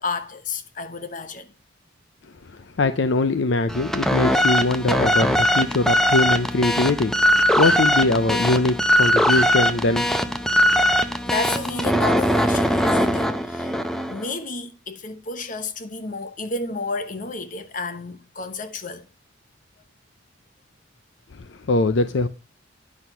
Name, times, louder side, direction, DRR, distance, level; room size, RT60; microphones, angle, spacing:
voice 1, 0.0-1.5 11.2-13.8 14.1-19.1, left 3 dB, 40° left, 1.0 m, -31 dB
voice 2, 2.5-10.1 21.3-22.3, left 2 dB, 60° left, 0.5 m, -22 dB
sound 1, 3.7-14.3, equal, ahead, 0.6 m, -20 dB
9.6 x 6.0 x 5.6 m
head